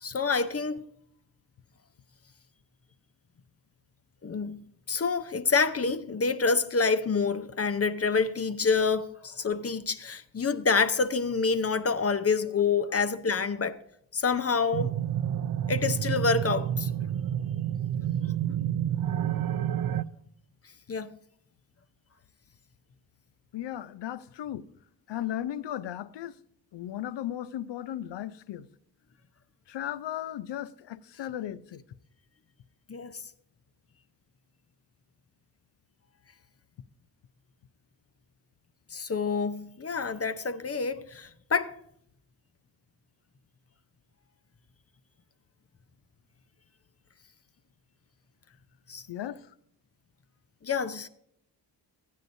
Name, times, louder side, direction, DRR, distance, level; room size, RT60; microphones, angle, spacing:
voice 1, 0.0-0.9 4.2-4.6 4.9-13.8 14.1-14.9 15.7-16.9 20.9-21.1 32.9-33.2 38.9-41.8 48.9-49.0 50.6-51.1, left 4 dB, 35° left, 0.8 m, -27 dB
sound 1, 14.7-20.0, right 10 dB, 55° right, 0.5 m, -29 dB
voice 2, 23.5-24.7 25.1-26.4 26.7-28.7 29.7-31.8 49.1-49.5, left 11 dB, 75° left, 0.6 m, -36 dB
16.0 x 9.5 x 2.6 m
cardioid pair, 65°, 43 cm